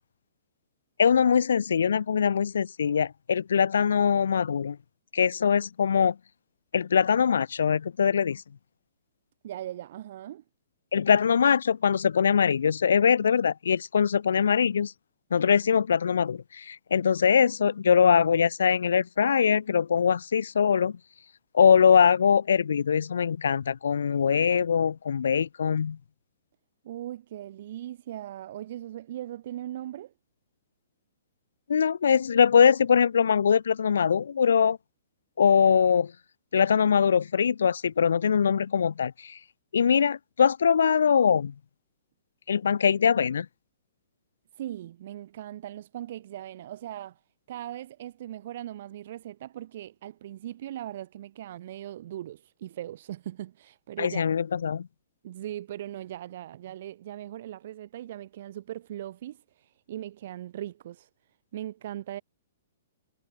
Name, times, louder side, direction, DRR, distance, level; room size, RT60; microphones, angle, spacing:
voice 1, 1.0-4.8 5.1-6.2 6.7-8.4 10.9-14.9 15.3-21.0 21.5-26.0 31.7-34.8 35.4-36.1 36.5-39.4 39.7-41.5 42.5-43.5 54.0-54.9, left 7 dB, 75° left, 0.3 m, -22 dB
voice 2, 9.4-10.4 26.8-30.1 44.5-47.2 47.5-54.2 55.2-61.1 61.5-62.2, right 12 dB, 55° right, 4.5 m, -39 dB
hypercardioid pair, 125°, 0 cm